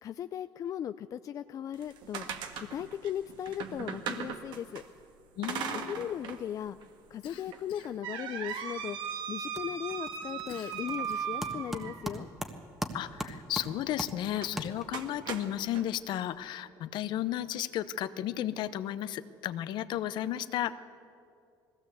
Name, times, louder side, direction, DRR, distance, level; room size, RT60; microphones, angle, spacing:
voice 1, 0.0-2.3 2.6-4.8 5.7-6.8 7.1-12.3, left 10 dB, 45° left, 11 dB, 0.4 m, -37 dB
sound 1, 1.7-4.8 5.4-6.4 6.8-6.9 7.5-12.2 14.3-14.5 14.9-15.8, right 7 dB, 70° right, 1.7 m, -38 dB
voice 2, 5.4-6.1 12.9-20.7, left 12 dB, 65° left, 14 dB, 0.8 m, -34 dB
Cough, 7.2-8.0 8.5-9.1 10.5-11.5, left 10 dB, 80° left, 1.4 m, -51 dB
sound 2, 8.7-9.1 9.3-15.2, equal, 5° right, 1.4 m, -41 dB
20.0 x 16.5 x 8.2 m, 2.5 s
cardioid pair, 125°, 8 cm